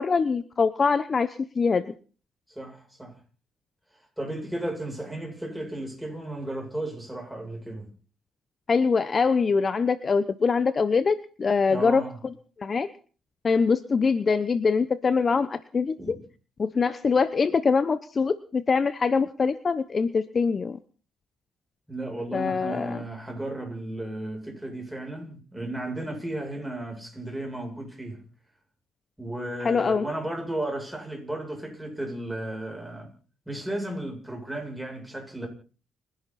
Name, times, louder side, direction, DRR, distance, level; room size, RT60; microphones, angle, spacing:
voice 1, 0.0-1.9 8.7-12.0 12.6-12.9 13.4-16.2 16.6-20.8 22.3-23.0 29.6-30.0, left 5 dB, 40° left, 1.0 m, -23 dB
voice 2, 2.5-3.2 4.2-7.9 11.7-12.2 16.0-16.2 21.9-28.2 29.2-33.1 33.5-35.5, right 1 dB, 5° right, 7.9 m, -34 dB
29.5 x 11.0 x 4.3 m
cardioid pair, 90°, 0 cm